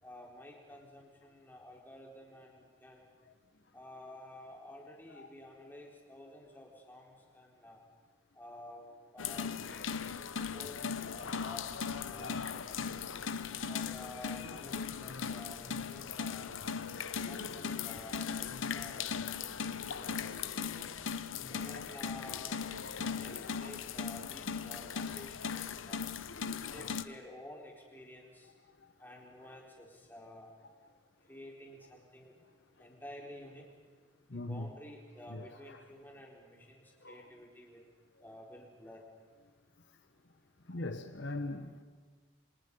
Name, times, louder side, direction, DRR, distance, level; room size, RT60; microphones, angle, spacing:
voice 1, 0.0-3.1 3.7-7.8 8.3-8.9 9.1-9.5 10.4-11.7 12.0-13.1 13.7-16.5 17.1-19.2 19.6-21.1 21.5-22.6 23.1-26.0 26.5-28.5 29.0-30.5 31.3-32.4 32.8-33.7 34.3-37.8 38.2-39.0, left 1 dB, 10° left, 4.1 m, -51 dB
sound 1, 9.2-27.0, left 6 dB, 85° left, 0.9 m, -38 dB
voice 2, 9.6-10.0 10.4-10.6 12.4-12.5 13.3-13.6 14.2-14.3 16.9-17.3 18.3-18.4 23.0-23.7 26.5-26.8 27.1-27.2 28.8-28.9 32.8-32.9 34.3-34.7 35.3-35.8 37.0-37.3 40.7-41.8, left 2 dB, 65° left, 1.1 m, -43 dB
28.0 x 26.0 x 5.5 m
head